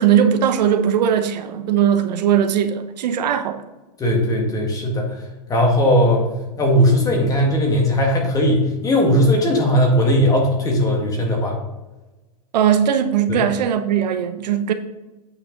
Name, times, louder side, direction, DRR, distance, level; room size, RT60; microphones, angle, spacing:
voice 1, 0.0-3.6 12.5-14.7, right 9 dB, 80° right, 0.8 m, -19 dB
voice 2, 4.0-5.1 5.5-6.2 6.6-11.6 13.3-13.4, equal, 15° left, 1.8 m, -18 dB
8.5 x 5.6 x 3.9 m
supercardioid pair, 145°, 21 cm